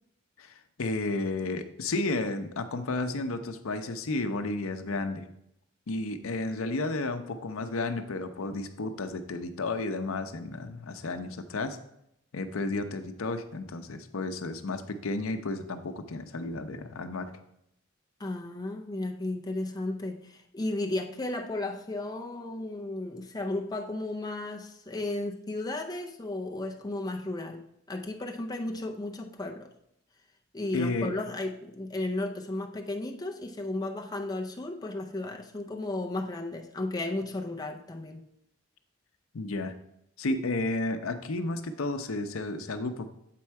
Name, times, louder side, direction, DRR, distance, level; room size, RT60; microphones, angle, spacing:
voice 1, 0.4-5.3 5.9-11.8 12.3-17.3 30.7-31.1 39.3-39.7 40.2-43.1, left 2 dB, 75° left, 8 dB, 0.6 m, -32 dB
voice 2, 18.2-29.7 30.5-38.2, left 2 dB, 20° left, 2 dB, 0.5 m, -34 dB
7.6 x 4.3 x 4.6 m, 0.78 s
head